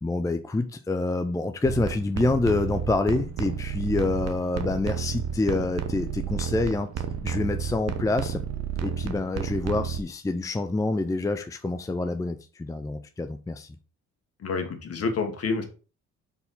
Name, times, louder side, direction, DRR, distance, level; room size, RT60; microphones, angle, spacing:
voice 1, 0.0-6.9 7.2-8.4 8.8-13.8, left 2 dB, 10° left, 0.5 m, -27 dB
sound 1, 1.6-10.0, right 8 dB, 55° right, 1.0 m, -31 dB
voice 2, 14.4-15.6, left 4 dB, 55° left, 1.8 m, -28 dB
4.7 x 4.1 x 5.5 m
cardioid pair, 90°, 30 cm